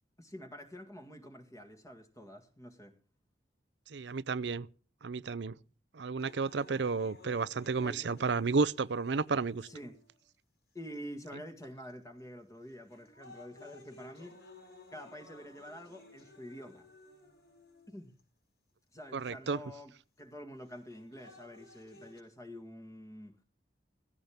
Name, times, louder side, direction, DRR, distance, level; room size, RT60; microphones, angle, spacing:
voice 1, 0.2-3.0 7.8-8.2 9.6-10.0 10.7-14.4 14.6-16.9 17.9-18.1 18.9-23.4, equal, 15° left, 1.9 m, -48 dB
voice 2, 3.9-4.7 5.0-5.6 5.9-9.7 19.1-19.6, right 4 dB, 70° right, 0.6 m, -32 dB
sound 1, 6.2-10.2 11.0-11.1 11.9-12.2 12.7-18.2 19.2-19.3 20.7-22.2, left 2 dB, 60° left, 5.9 m, -56 dB
16.0 x 16.0 x 3.6 m
head